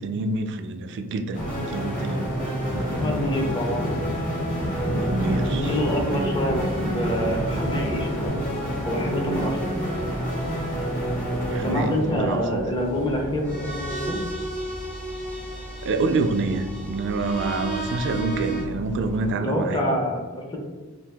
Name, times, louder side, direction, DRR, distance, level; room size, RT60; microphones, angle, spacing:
voice 1, 0.0-2.3 4.9-5.8 6.1-6.4 11.5-12.7 15.8-19.8, right 3 dB, 55° right, 7 dB, 0.3 m, -27 dB
sound 1, 1.3-18.6, equal, 35° left, 1.1 m, -30 dB
sound 2, 2.6-8.3, equal, 60° left, 0.8 m, -32 dB
voice 2, 3.0-3.9 5.5-8.5 8.8-9.7 11.6-14.2 19.3-20.6, equal, 20° left, 1 dB, 0.6 m, -26 dB
sound 3, 4.6-19.3, right 1 dB, 80° left, 1.5 m, -38 dB
2.7 x 2.6 x 3.3 m, 1.4 s
head